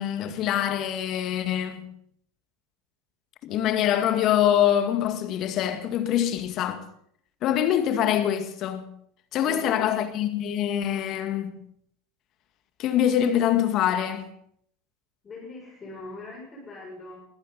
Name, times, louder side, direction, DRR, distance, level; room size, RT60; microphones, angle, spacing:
voice 1, 0.0-1.9 3.4-6.8 7.4-8.9 9.3-11.6 12.8-14.3, left 10 dB, 45° left, 2.1 m, -24 dB
voice 2, 9.4-10.0 15.2-17.2, left 2 dB, 25° left, 7.1 m, -41 dB
21.5 x 15.0 x 4.2 m
figure-of-eight pair, 75°, 0 cm